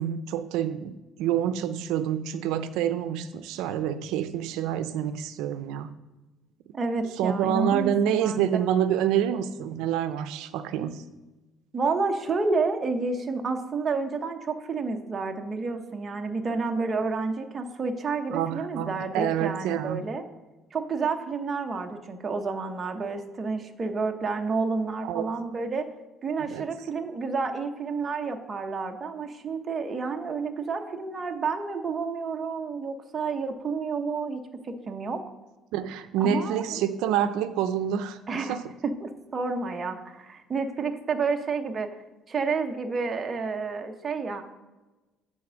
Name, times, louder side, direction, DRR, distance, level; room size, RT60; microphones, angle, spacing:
voice 1, 0.0-5.9 7.2-11.0 18.3-20.0 25.0-25.2 26.5-26.7 35.7-38.6, right 9 dB, 75° right, 10 dB, 0.5 m, -27 dB
voice 2, 6.7-8.4 11.7-20.2 20.7-25.9 26.2-35.2 36.2-36.9 38.3-41.9 42.3-44.5, right 4 dB, 20° right, 4 dB, 0.7 m, -30 dB
8.6 x 4.1 x 6.2 m, 1.1 s
cardioid pair, 175°, 0 cm